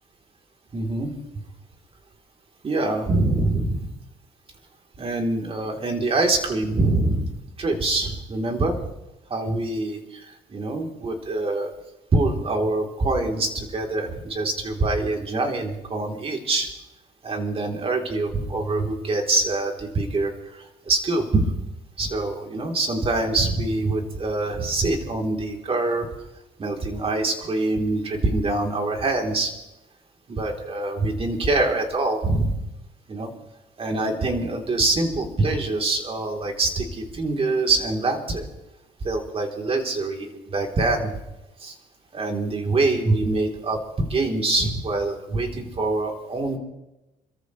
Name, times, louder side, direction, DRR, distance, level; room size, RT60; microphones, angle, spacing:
voice 1, 0.7-1.1 2.6-3.9 5.0-7.3 7.6-8.8 9.3-11.7 12.1-16.7 17.2-21.5 22.0-26.1 26.6-29.5 30.3-32.6 33.1-33.3 33.8-38.5 39.0-41.1 41.6-41.8 42.1-46.6, right 2 dB, 35° right, 2 dB, 3.5 m, -24 dB
28.0 x 14.0 x 3.3 m, 0.96 s
cardioid pair, 110°, 17 cm